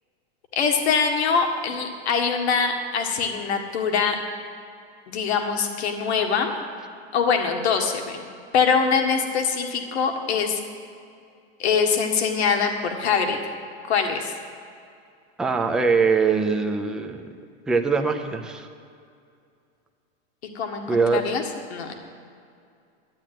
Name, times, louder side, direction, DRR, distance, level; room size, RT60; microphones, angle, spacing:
voice 1, 0.5-4.2 5.1-6.5 7.1-8.3 8.5-10.6 11.6-13.4 13.9-14.3 20.6-21.4 21.7-21.9, left 6 dB, 85° left, 4 dB, 1.8 m, -23 dB
voice 2, 15.4-17.3 17.7-18.7 20.9-21.2, right 4 dB, ahead, 4 dB, 0.3 m, -22 dB
12.0 x 8.6 x 9.1 m, 2.4 s
supercardioid pair, 155°, 32 cm